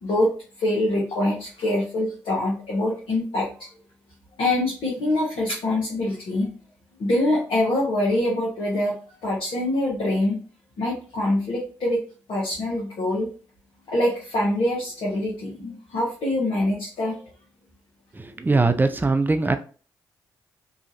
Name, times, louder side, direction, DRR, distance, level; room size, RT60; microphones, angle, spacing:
voice 1, 0.0-3.7 4.4-6.5 7.0-10.4 10.8-12.0 12.3-13.3 13.9-17.2, left 1 dB, 65° left, -5 dB, 1.0 m, -24 dB
voice 2, 18.2-19.6, right 3 dB, 20° right, 8 dB, 0.5 m, -21 dB
2.9 x 2.4 x 2.7 m, 0.38 s
hypercardioid pair, 40°, 10 cm